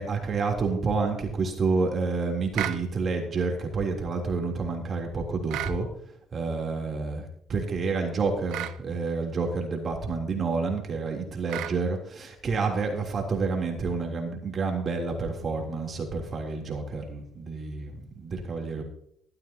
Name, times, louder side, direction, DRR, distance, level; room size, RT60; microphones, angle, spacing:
voice 1, 0.0-5.9 6.3-18.8, right 4 dB, 45° right, 2 dB, 3.3 m, -29 dB
sound 1, 2.5-2.8 5.5-5.8 8.5-8.8 11.5-11.8, right 13 dB, 80° right, 0.6 m, -32 dB
14.5 x 11.5 x 2.9 m, 0.70 s
supercardioid pair, 75°, 0 cm